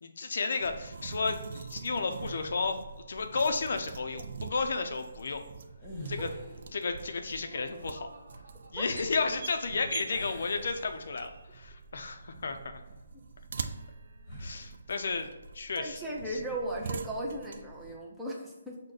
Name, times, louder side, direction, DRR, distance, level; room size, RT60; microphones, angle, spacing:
voice 1, 0.0-2.8 3.1-5.4 6.1-6.3 6.7-8.1 8.7-12.8 14.4-15.3 15.5-16.0 16.3-16.4, left 4 dB, 60° left, 6 dB, 0.5 m, -32 dB
sound 1, 0.6-18.0, right 5 dB, 50° right, 0.3 m, -44 dB
sound 2, 2.2-2.8 5.7-6.8 10.1-11.5 12.0-12.2 14.2-14.7, equal, 20° left, 0.9 m, -45 dB
Laughter, 6.0-9.7, right 2 dB, 85° right, 0.8 m, -55 dB
voice 2, 15.8-18.8, right 1 dB, 5° right, -4 dB, 0.6 m, -36 dB
6.2 x 2.2 x 3.9 m, 1.1 s
hypercardioid pair, 165°, 0 cm